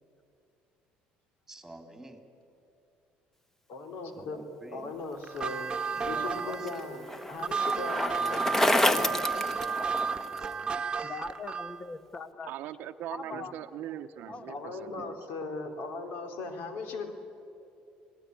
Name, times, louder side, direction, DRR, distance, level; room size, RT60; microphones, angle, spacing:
voice 1, 1.5-2.2 4.2-5.2 6.0-10.8 14.3-15.1, right 1 dB, 5° right, 4 dB, 3.3 m, -48 dB
voice 2, 3.7-4.4 4.7-5.7 6.0-7.0 7.3-9.1 13.3-13.4 14.5-17.1, left 3 dB, 70° left, 5 dB, 3.5 m, -38 dB
sound 1, 5.2-11.8, right 5 dB, 25° right, 1.3 m, -33 dB
Bicycle, 6.0-10.4, left 1 dB, 10° left, 1.3 m, -29 dB
voice 3, 11.0-12.5 13.1-13.5 14.3-14.5, left 4 dB, 35° left, 10 dB, 1.6 m, -41 dB
voice 4, 12.4-15.2, right 11 dB, 65° right, 7 dB, 0.8 m, -40 dB
25.0 x 18.0 x 9.8 m, 2.6 s
supercardioid pair, 90°, 3 cm